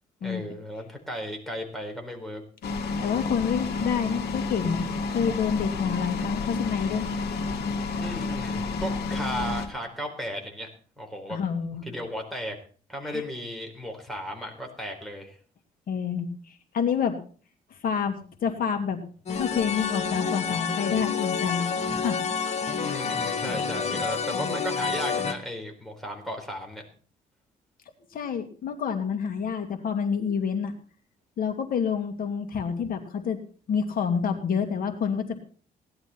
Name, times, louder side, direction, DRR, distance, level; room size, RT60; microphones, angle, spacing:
voice 1, 0.2-2.4 8.0-10.7 11.0-11.4 11.9-12.6 12.9-15.4 22.7-26.8, equal, ahead, 2 dB, 4.0 m, -35 dB
sound 1, 2.6-9.7, left 4 dB, 85° left, 1.9 m, -30 dB
voice 2, 3.0-7.1 7.4-7.7 11.3-11.9 13.1-13.2 15.9-17.2 17.8-19.0 19.3-22.2 23.9-24.0 28.1-30.7 31.4-33.4 33.7-35.4, left 7 dB, 60° left, 5 dB, 2.2 m, -28 dB
sound 2, 19.3-25.3, left 5 dB, 45° left, 1.7 m, -29 dB
17.5 x 11.0 x 4.3 m, 0.41 s
cardioid pair, 125°, 16 cm